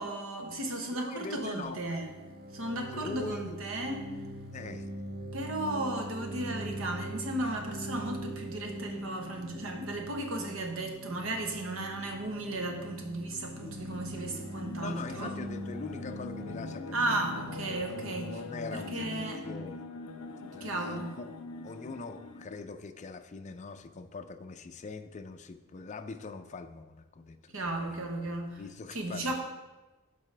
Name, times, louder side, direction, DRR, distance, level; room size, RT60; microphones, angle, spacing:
voice 1, 0.0-2.1 2.5-4.2 5.3-15.3 16.9-18.4 18.7-19.4 20.4-21.2 27.5-28.6 28.9-29.3, right 2 dB, 70° right, 3 dB, 1.1 m, -35 dB
voice 2, 0.9-1.8 2.9-3.6 4.5-4.9 14.8-17.0 17.7-20.1 20.5-21.3 21.6-28.0 28.2-29.3, left 4 dB, 35° left, 8 dB, 0.4 m, -43 dB
sound 1, 1.6-19.2, equal, 45° right, 1.3 m, -42 dB
sound 2, 13.4-22.6, left 3 dB, 85° left, 0.5 m, -43 dB
12.0 x 4.1 x 3.3 m, 1.2 s
head